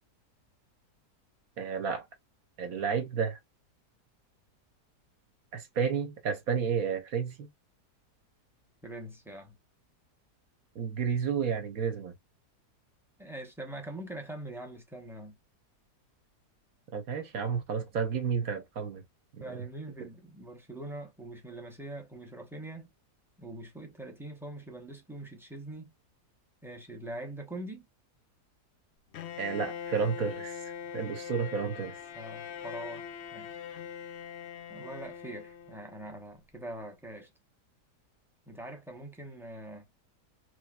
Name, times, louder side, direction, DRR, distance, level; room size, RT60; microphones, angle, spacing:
voice 1, 1.6-2.1 2.6-3.4 5.5-7.5 10.7-12.1 16.9-19.0 19.5-19.6 29.4-32.0, right 6 dB, 65° right, 1.2 m, -31 dB
voice 2, 8.8-9.6 13.2-15.4 19.4-22.9 23.4-25.9 26.6-27.9 32.1-33.6 34.7-37.3 38.5-39.9, right 1 dB, 5° right, 0.5 m, -43 dB
Bowed string instrument, 29.1-36.1, left 8 dB, 80° left, 0.6 m, -42 dB
3.4 x 3.1 x 2.2 m
omnidirectional pair, 1.7 m